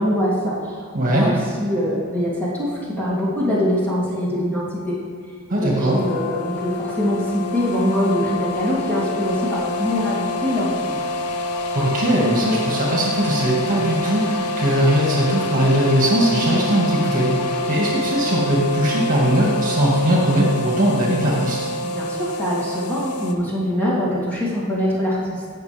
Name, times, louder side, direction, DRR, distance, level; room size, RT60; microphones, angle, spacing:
voice 1, 0.0-5.0 5.6-11.1 21.8-25.4, equal, 5° left, -8 dB, 2.9 m, -23 dB
voice 2, 0.9-1.3 5.5-6.0 11.7-21.7, equal, 40° right, -3 dB, 2.0 m, -20 dB
sound 1, 5.9-23.3, left 2 dB, 90° left, 0.8 m, -26 dB
18.0 x 6.7 x 3.5 m, 2.2 s
head